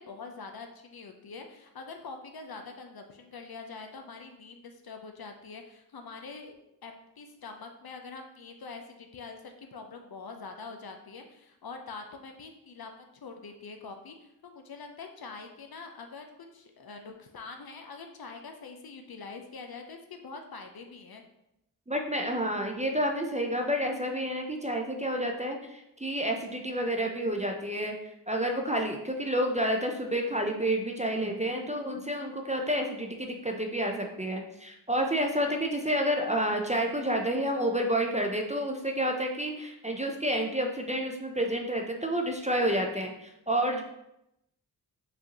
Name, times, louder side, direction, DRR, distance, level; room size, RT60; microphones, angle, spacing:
voice 1, 0.0-6.5 6.8-21.2, left 4 dB, 55° left, 4 dB, 0.6 m, -44 dB
voice 2, 21.9-27.9 28.3-43.8, equal, 15° right, 2 dB, 0.5 m, -29 dB
4.9 x 2.6 x 2.9 m, 0.83 s
cardioid pair, 45°, 44 cm